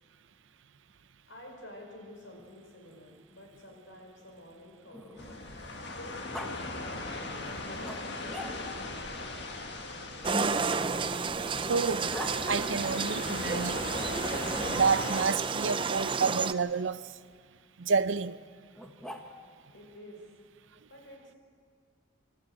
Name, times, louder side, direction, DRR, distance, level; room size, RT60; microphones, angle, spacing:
voice 1, 1.3-5.4 5.9-7.1 7.6-10.6 19.7-20.2 20.9-21.4, left 1 dB, 80° left, 5.6 m, -50 dB
Growling, 2.2-5.6 6.3-6.5 7.8-8.9 10.3-12.4 14.2-14.9 16.2-16.4 18.7-19.6, equal, 5° left, 1.3 m, -45 dB
sound 1, 5.2-15.2, left 2 dB, 60° left, 1.9 m, -39 dB
sound 2, 10.2-16.5, right 4 dB, 25° right, 0.5 m, -31 dB
voice 2, 11.7-12.1 12.5-13.8 14.7-17.1 17.8-18.4, right 5 dB, 75° right, 0.6 m, -29 dB
26.5 x 12.5 x 8.9 m
head